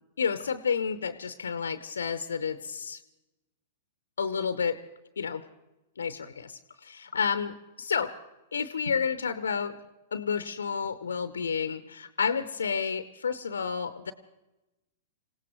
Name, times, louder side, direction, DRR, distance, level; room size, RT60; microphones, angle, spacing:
voice 1, 0.2-3.0 4.2-4.8 5.2-5.4 6.0-7.5 7.8-8.2 8.5-9.8 10.1-14.1, left 6 dB, 70° left, 12 dB, 0.7 m, -30 dB
27.0 x 17.0 x 3.0 m, 1.0 s
figure-of-eight pair, 100°, 0 cm